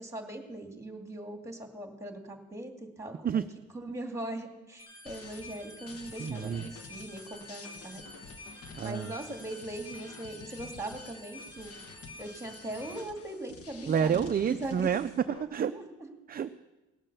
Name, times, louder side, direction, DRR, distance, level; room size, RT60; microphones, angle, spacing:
voice 1, 0.0-3.4 3.7-8.1 8.8-11.7 12.2-14.9 15.6-15.9, right 1 dB, 10° right, 4 dB, 2.2 m, -40 dB
sound 1, 4.8-13.0, left 2 dB, 15° left, 5.1 m, -49 dB
sound 2, 5.1-15.4, left 4 dB, 50° left, 1.2 m, -50 dB
voice 2, 6.2-6.6 8.8-9.1 13.9-15.7 16.3-16.7, right 8 dB, 30° right, 10 dB, 0.4 m, -29 dB
18.5 x 7.4 x 6.8 m, 1.1 s
cardioid pair, 90°, 30 cm